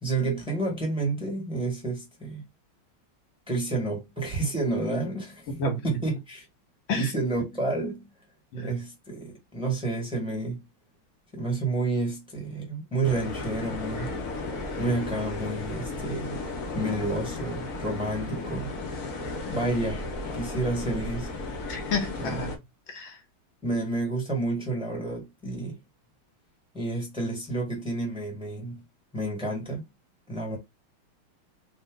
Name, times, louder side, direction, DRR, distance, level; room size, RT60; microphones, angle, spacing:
voice 1, 0.0-2.4 3.5-6.4 6.9-8.1 8.6-10.6 11.3-14.1 14.8-16.4 16.7-18.7 19.5-21.3 22.2-22.4 23.6-25.8 26.7-28.8 29.1-29.9 30.3-30.6, right 2 dB, 5° right, 1.3 m, -30 dB
voice 2, 5.5-5.8 6.9-7.1 8.5-8.7 21.7-22.6 22.9-23.2, left 2 dB, 75° left, 1.9 m, -30 dB
sound 1, 13.0-22.6, left 3 dB, 55° left, 1.3 m, -34 dB
4.0 x 2.4 x 3.7 m
omnidirectional pair, 2.2 m